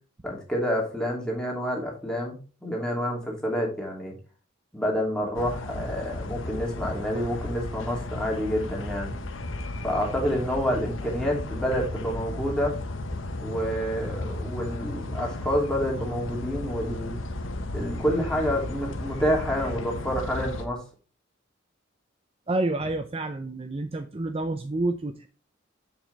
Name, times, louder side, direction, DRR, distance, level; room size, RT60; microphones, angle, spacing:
voice 1, 0.2-4.1 4.7-9.1 9.8-12.8 13.4-17.2 17.7-20.8, equal, 5° left, -2 dB, 2.8 m, -28 dB
sound 1, 5.3-20.6, left 2 dB, 85° left, 1.1 m, -34 dB
voice 2, 22.5-25.3, right 2 dB, 30° right, 7 dB, 0.6 m, -29 dB
7.4 x 7.0 x 3.4 m, 0.35 s
head